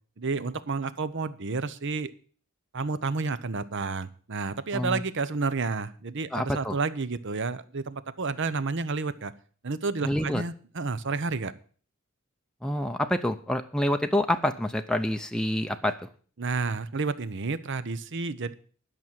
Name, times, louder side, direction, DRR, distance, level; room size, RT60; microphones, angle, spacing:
voice 1, 0.2-2.1 2.7-9.3 9.6-11.5 16.4-18.5, right 4 dB, 60° right, 15 dB, 0.8 m, -30 dB
voice 2, 6.3-6.8 10.0-10.4 12.6-16.0, left 1 dB, 5° left, 5 dB, 0.6 m, -27 dB
11.5 x 6.1 x 9.2 m, 0.43 s
head